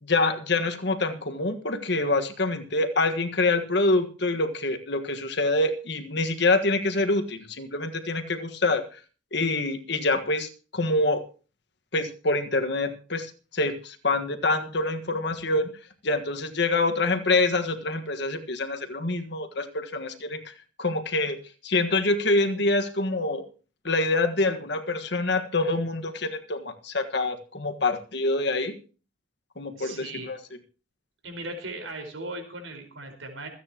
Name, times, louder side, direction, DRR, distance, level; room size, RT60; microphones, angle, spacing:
voice 1, 0.0-9.0 9.3-11.2 11.9-15.7 16.0-21.4 21.6-23.4 23.8-28.7 29.6-30.4, left 2 dB, 55° left, 8 dB, 1.6 m, -26 dB
voice 2, 29.8-30.3 31.2-33.5, right 2 dB, 80° right, 4 dB, 4.9 m, -38 dB
27.0 x 9.3 x 3.0 m, 0.37 s
head